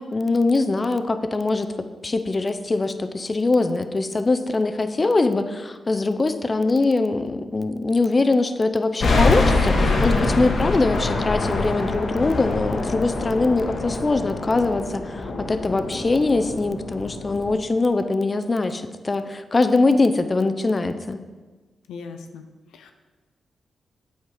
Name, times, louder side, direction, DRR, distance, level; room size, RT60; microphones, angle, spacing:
voice 1, 0.0-1.7 2.0-21.2, left 3 dB, 40° left, 9 dB, 0.5 m, -22 dB
sound 1, 9.0-17.5, left 3 dB, 65° left, 1.1 m, -24 dB
voice 2, 21.9-22.4 22.7-22.9, left 4 dB, 85° left, 6 dB, 0.4 m, -38 dB
8.3 x 4.4 x 5.0 m, 1.3 s
supercardioid pair, 45°, 0 cm